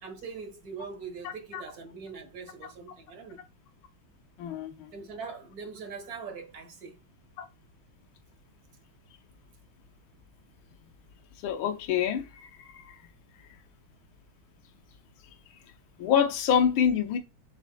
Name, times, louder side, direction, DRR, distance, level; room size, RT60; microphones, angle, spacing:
voice 1, 0.0-3.4 4.9-7.0, right 5 dB, 50° right, 1.9 m, -42 dB
voice 2, 4.4-4.9 7.4-7.5 11.4-13.0 16.0-17.2, left 8 dB, 80° left, 1.7 m, -26 dB
7.2 x 7.1 x 2.3 m
omnidirectional pair, 2.2 m